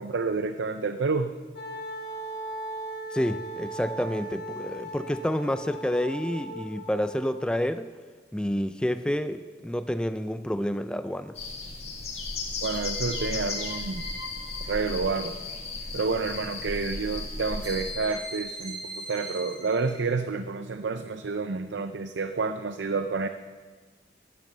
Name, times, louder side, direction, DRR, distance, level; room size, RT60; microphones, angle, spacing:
voice 1, 0.0-1.3 12.6-14.1 14.6-15.4 15.9-23.3, right 4 dB, 80° right, 9 dB, 0.5 m, -29 dB
Wind instrument woodwind instrument, 1.5-7.5, right 1 dB, 60° left, 2.0 m, -38 dB
voice 2, 3.1-7.9 8.3-11.4, equal, 5° left, 11 dB, 0.3 m, -29 dB
sound 1, 9.6-10.2 12.7-15.4 17.6-20.2, equal, 25° right, 2.7 m, -41 dB
sound 2, 11.3-17.9, left 3 dB, 35° left, 1.9 m, -35 dB
13.0 x 10.0 x 6.7 m, 1.5 s
head